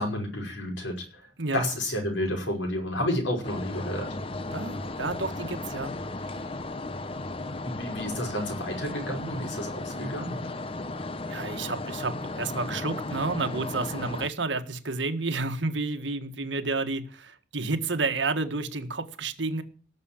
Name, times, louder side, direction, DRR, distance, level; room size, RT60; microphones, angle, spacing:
voice 1, 0.0-1.3 1.5-4.1 7.6-10.4, left 1 dB, 90° left, 2 dB, 5.6 m, -31 dB
sound 1, 3.4-14.3, left 2 dB, 30° left, 0.7 m, -35 dB
voice 2, 4.5-5.9 11.3-19.6, right 3 dB, 80° right, 7 dB, 1.7 m, -30 dB
18.0 x 7.0 x 8.9 m, 0.41 s
head